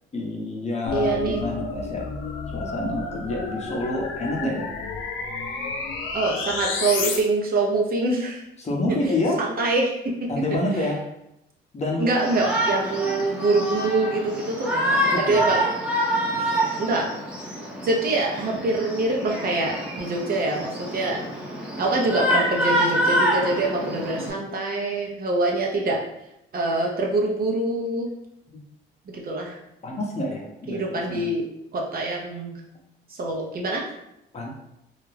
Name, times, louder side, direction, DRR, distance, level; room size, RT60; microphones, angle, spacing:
voice 1, 0.1-2.1 2.5-4.7 8.6-9.4 10.3-11.0 11.7-12.2 15.1-15.5 16.3-16.6 24.2-24.3 29.8-31.3 34.3-34.5, left 1 dB, 35° left, -1 dB, 0.7 m, -28 dB
sound 1, 0.9-7.2, left 4 dB, 90° left, 0.4 m, -31 dB
voice 2, 0.9-1.5 6.1-8.4 9.4-10.3 12.0-15.6 16.8-17.1 17.8-21.2 21.8-26.0 26.5-28.1 29.1-29.6 30.7-31.4 31.7-32.6 33.1-33.8, right 2 dB, 50° right, -1 dB, 0.6 m, -25 dB
Shout, 12.2-24.3, equal, 5° right, 0.7 m, -26 dB
2.4 x 2.1 x 3.2 m, 0.83 s
cardioid pair, 90°, 20 cm